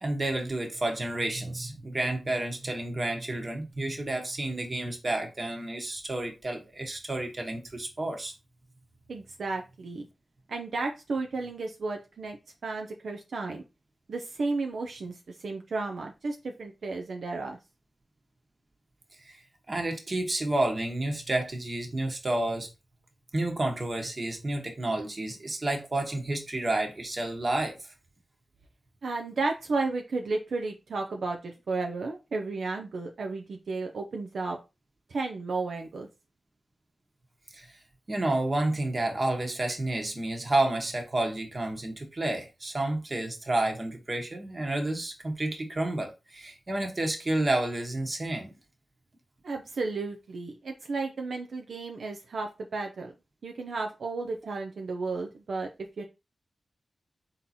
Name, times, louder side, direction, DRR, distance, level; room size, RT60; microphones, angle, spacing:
voice 1, 0.0-8.3 19.2-19.4 19.7-22.7 23.3-27.8 37.5-37.8 38.1-48.5, right 2 dB, 40° right, 1.2 m, -30 dB
voice 2, 9.1-10.1 10.5-12.4 12.6-13.6 14.1-15.2 15.4-17.6 29.0-34.6 35.1-36.1 49.4-53.1 53.4-55.7 56.0-56.1, right 3 dB, 80° right, 0.5 m, -33 dB
3.8 x 2.9 x 4.1 m
cardioid pair, 55°, 0 cm